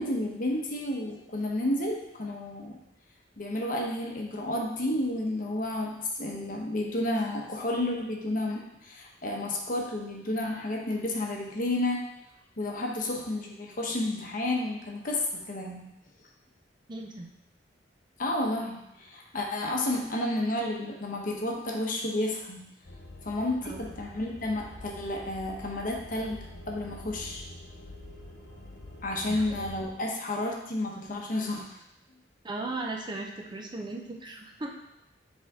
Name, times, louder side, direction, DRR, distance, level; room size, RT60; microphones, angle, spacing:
voice 1, 0.0-2.8 3.4-12.0 12.6-15.8 18.2-22.6 23.2-26.4 26.7-27.5 29.0-31.8, left 1 dB, 50° left, 0 dB, 1.0 m, -31 dB
voice 2, 16.9-17.3 23.6-23.8 29.3-29.7 32.4-34.7, right 2 dB, 25° right, 1 dB, 0.6 m, -37 dB
sound 1, 22.8-29.8, left 2 dB, 75° left, 1.1 m, -46 dB
7.5 x 3.6 x 3.6 m, 0.87 s
head